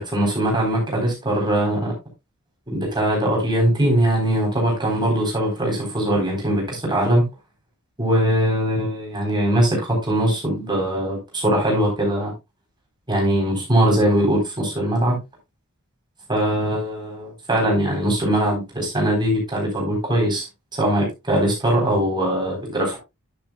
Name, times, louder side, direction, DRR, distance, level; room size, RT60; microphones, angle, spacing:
voice 1, 0.0-1.9 2.7-7.2 8.0-12.3 13.1-15.2 16.3-20.5 20.7-23.0, right 1 dB, 20° right, -1 dB, 4.0 m, -21 dB
10.5 x 9.0 x 2.3 m, 0.22 s
head